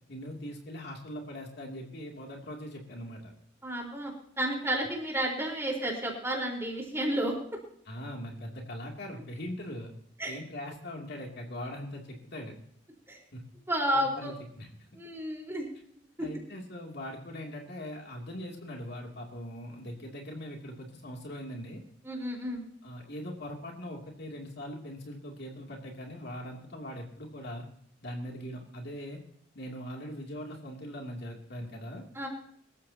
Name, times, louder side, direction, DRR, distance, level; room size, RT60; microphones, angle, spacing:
voice 1, 0.1-3.3 7.8-9.9 10.3-12.5 13.3-13.4 13.9-14.7 16.2-21.8 22.8-27.7 28.0-29.2 29.5-32.0, equal, 55° left, 0 dB, 2.8 m, -41 dB
voice 2, 3.6-4.1 4.4-7.3 10.2-10.4 13.1-13.2 13.7-14.3 15.0-15.7 22.0-22.6 32.1-32.3, right 1 dB, 15° right, 0 dB, 4.2 m, -31 dB
24.0 x 14.0 x 2.9 m, 0.66 s
head